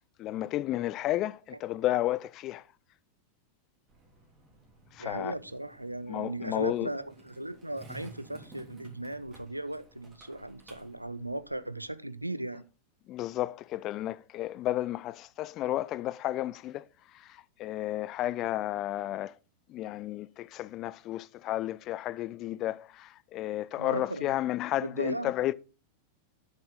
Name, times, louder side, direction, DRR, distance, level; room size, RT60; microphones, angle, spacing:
voice 1, 0.2-2.6 4.9-5.3 6.1-6.9 13.1-16.8 17.1-19.3 19.7-25.5, left 14 dB, 35° left, 0.3 m, -32 dB
Skateboard, 3.9-11.9, right 3 dB, 25° right, 3.3 m, -54 dB
voice 2, 5.0-12.6 23.8-24.3 24.8-25.3, right 1 dB, 85° right, 0.4 m, -37 dB
8.5 x 6.5 x 3.8 m
figure-of-eight pair, 90°, 0 cm